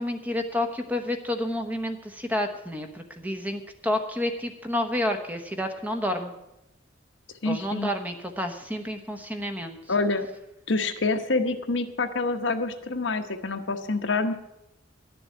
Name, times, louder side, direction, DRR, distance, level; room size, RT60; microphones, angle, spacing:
voice 1, 0.0-6.3 7.4-9.8, left 1 dB, 10° right, 5 dB, 1.0 m, -30 dB
voice 2, 7.4-7.9 9.9-10.3 10.7-14.3, left 3 dB, 65° left, 7 dB, 1.0 m, -26 dB
12.0 x 7.0 x 9.4 m, 0.88 s
head